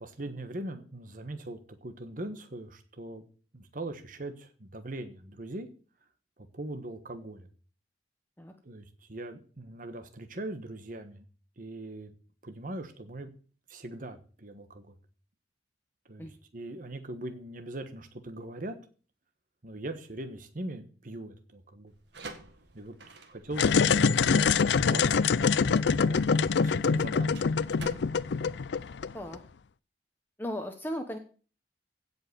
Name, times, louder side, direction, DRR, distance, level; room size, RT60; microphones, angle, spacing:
voice 1, 0.0-3.2 3.5-5.7 6.5-7.5 8.6-11.2 11.6-12.1 12.4-13.3 13.7-14.9 16.1-18.7 19.6-21.9 22.7-27.7, right 1 dB, 50° right, 8 dB, 1.3 m, -41 dB
sound 1, 21.9-29.5, right 2 dB, 75° right, 1.7 m, -49 dB
sound 2, 23.5-29.4, left 5 dB, 80° left, 0.5 m, -25 dB
voice 2, 30.4-31.2, equal, 10° left, 5 dB, 1.0 m, -36 dB
16.0 x 5.5 x 6.8 m, 0.40 s
head